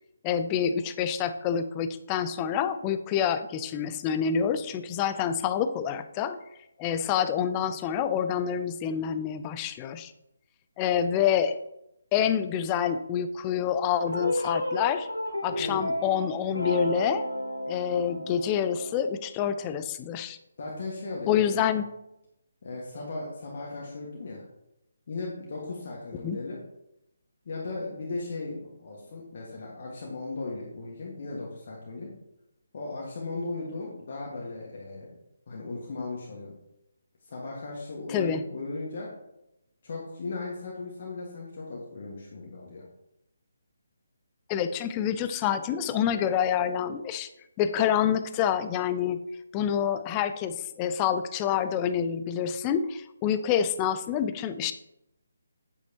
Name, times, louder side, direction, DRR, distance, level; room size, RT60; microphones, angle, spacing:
voice 1, 0.2-6.4 6.8-10.1 10.8-11.6 12.1-15.1 15.4-17.2 17.7-20.4 21.3-21.8 26.2-26.4 38.1-38.4 44.5-47.3 47.6-49.2 49.5-54.7, left 8 dB, 20° left, 11 dB, 0.5 m, -27 dB
sound 1, 14.0-19.0, left 1 dB, 70° left, 1.7 m, -32 dB
voice 2, 15.5-15.9 20.6-21.7 22.6-24.4 25.1-26.6 27.4-32.1 32.7-35.1 35.5-36.6 37.2-39.1 39.8-42.8, left 3 dB, 45° left, -3 dB, 1.7 m, -37 dB
9.0 x 8.3 x 3.0 m, 0.85 s
figure-of-eight pair, 145°, 0 cm